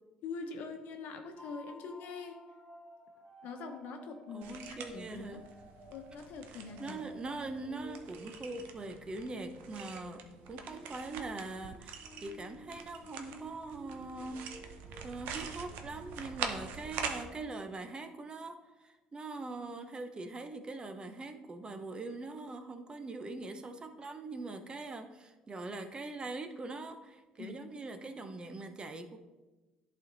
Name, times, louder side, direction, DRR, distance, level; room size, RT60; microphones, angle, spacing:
voice 1, 0.2-2.4 3.4-5.4 5.9-7.1 27.4-27.6, left 4 dB, 65° left, 5 dB, 1.0 m, -43 dB
sound 1, 1.3-15.0, equal, ahead, 2.2 m, -55 dB
voice 2, 4.3-5.4 6.5-14.6 15.0-29.2, right 3 dB, 30° right, 8 dB, 0.8 m, -42 dB
sound 2, 4.4-17.2, right 6 dB, 70° right, 0.8 m, -45 dB
11.0 x 4.4 x 4.0 m, 1.2 s
hypercardioid pair, 70°, 3 cm